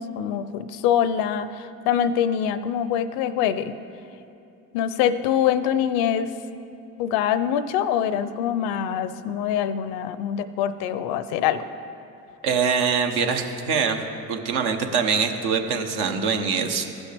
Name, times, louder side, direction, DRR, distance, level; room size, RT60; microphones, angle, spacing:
voice 1, 0.0-1.5 1.8-3.7 4.7-6.3 7.0-11.6, left 9 dB, 85° left, 13 dB, 0.5 m, -24 dB
voice 2, 12.4-14.0 14.3-16.9, right 6 dB, 75° right, 5 dB, 0.9 m, -23 dB
15.5 x 6.2 x 3.4 m, 2.8 s
supercardioid pair, 70°, 39 cm